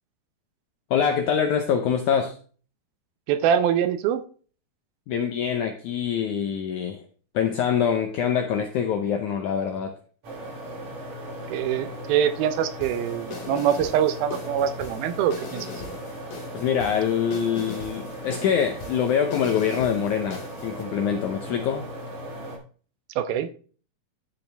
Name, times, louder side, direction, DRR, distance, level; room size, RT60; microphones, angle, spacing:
voice 1, 0.9-2.4 5.1-7.0 7.3-10.0 16.5-21.9, left 8 dB, 80° left, 5 dB, 1.7 m, -25 dB
voice 2, 3.3-4.2 11.5-15.7 23.2-23.5, right 9 dB, 80° right, 11 dB, 2.4 m, -24 dB
sound 1, 10.2-22.6, right 1 dB, 50° right, 3.1 m, -37 dB
sound 2, 12.8-20.8, left 4 dB, 60° left, 4.1 m, -41 dB
13.0 x 6.8 x 3.4 m, 0.41 s
omnidirectional pair, 4.5 m